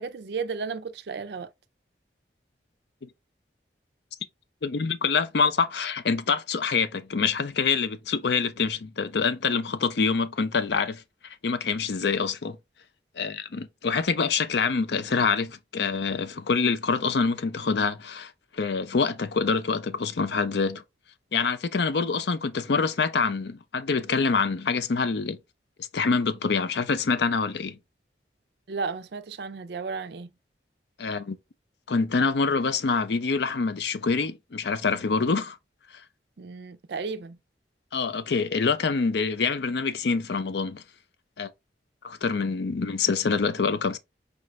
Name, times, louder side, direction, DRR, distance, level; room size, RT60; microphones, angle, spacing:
voice 1, 0.0-1.5 28.7-30.3 36.4-37.4, right 4 dB, 65° right, 0.4 m, -33 dB
voice 2, 4.6-11.0 11.4-12.6 13.2-20.8 21.3-25.4 25.8-27.8 31.0-31.4 31.9-35.6 37.9-40.8 41.4-41.5 42.0-44.0, left 5 dB, 70° left, 0.5 m, -26 dB
4.9 x 2.5 x 3.1 m
head